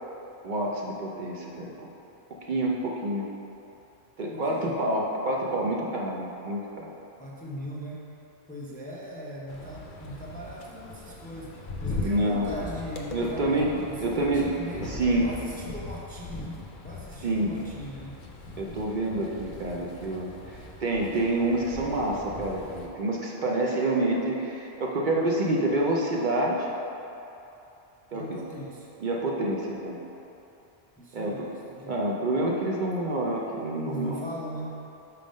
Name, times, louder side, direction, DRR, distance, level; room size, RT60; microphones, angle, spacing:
voice 1, 0.4-1.7 2.5-3.3 4.2-6.9 12.0-12.5 13.1-14.5 14.8-15.3 17.2-17.5 18.6-26.7 28.1-28.4 29.0-30.0 31.1-31.5 31.9-34.2, right 1 dB, 55° right, -2 dB, 0.7 m, -28 dB
voice 2, 4.3-4.8 7.2-8.1 8.5-18.2 28.1-28.9 31.0-32.1 33.8-34.8, equal, 10° left, -4 dB, 0.4 m, -39 dB
sound 1, 9.5-22.9, left 2 dB, 55° left, 0.7 m, -40 dB
5.8 x 3.6 x 5.1 m, 2.9 s
omnidirectional pair, 1.1 m